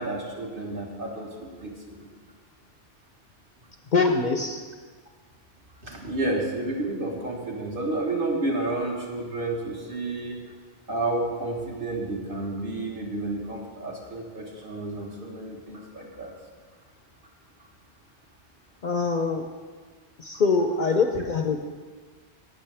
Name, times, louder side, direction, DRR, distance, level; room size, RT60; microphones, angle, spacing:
voice 1, 0.0-2.1 5.8-10.4 10.9-16.3, right 2 dB, 50° right, -1 dB, 1.7 m, -31 dB
voice 2, 3.9-4.6 18.8-19.5 20.2-21.6, left 4 dB, 50° left, 5 dB, 0.7 m, -23 dB
17.0 x 6.3 x 3.4 m, 1.4 s
omnidirectional pair, 1.2 m